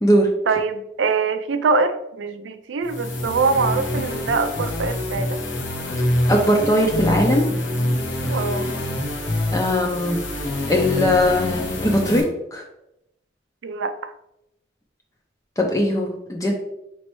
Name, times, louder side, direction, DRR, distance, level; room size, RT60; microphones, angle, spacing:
voice 1, 0.5-5.4 8.3-8.7 13.6-14.1, right 4 dB, 80° right, 10 dB, 0.4 m, -23 dB
sound 1, 2.8-12.2, left 1 dB, 75° left, 1.0 m, -25 dB
voice 2, 6.3-7.5 9.5-10.2 10.7-12.2 12.5-12.6 15.6-16.5, equal, 20° left, 0 dB, 0.4 m, -19 dB
5.3 x 3.1 x 3.0 m, 0.85 s
head